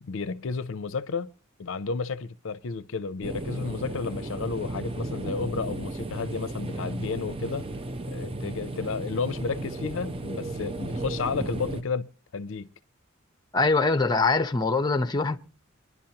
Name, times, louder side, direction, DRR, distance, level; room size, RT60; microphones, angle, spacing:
voice 1, 0.0-1.3 1.6-7.6 8.1-12.1 12.3-12.7, left 4 dB, 65° left, 0.5 m, -32 dB
sound 1, 3.2-11.8, right 2 dB, 25° right, 0.7 m, -34 dB
voice 2, 13.5-15.4, left 3 dB, 20° left, 0.7 m, -23 dB
24.5 x 11.0 x 2.9 m
head